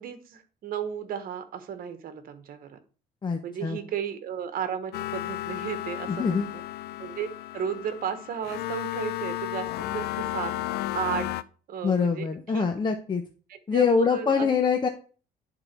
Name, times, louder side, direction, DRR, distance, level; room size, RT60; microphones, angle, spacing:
voice 1, 0.0-2.8 3.4-6.4 7.0-10.6 10.9-11.3 11.7-12.6 13.5-14.5, right 8 dB, 60° right, 10 dB, 1.3 m, -34 dB
voice 2, 3.2-3.8 6.1-6.5 11.8-13.2 13.7-14.9, left 6 dB, 25° left, 4 dB, 0.9 m, -24 dB
sound 1, 4.9-11.4, left 15 dB, 75° left, 0.5 m, -33 dB
10.5 x 3.9 x 4.5 m, 0.38 s
cardioid pair, 110°, 17 cm